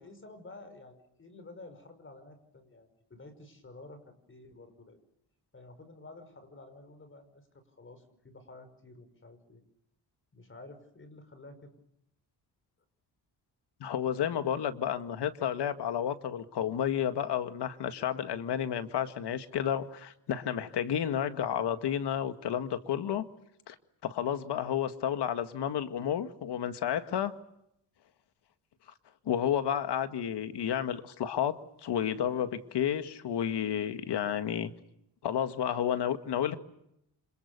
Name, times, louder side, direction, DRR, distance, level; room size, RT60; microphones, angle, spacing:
voice 1, 0.0-4.0 4.3-5.0 5.5-9.6 10.3-11.7, left 2 dB, 30° left, 5.4 m, -51 dB
voice 2, 13.8-23.3 23.7-23.8 24.0-27.4 29.3-34.7 35.2-36.6, left 9 dB, 75° left, 2.0 m, -31 dB
29.0 x 26.5 x 6.8 m
cardioid pair, 120°, 41 cm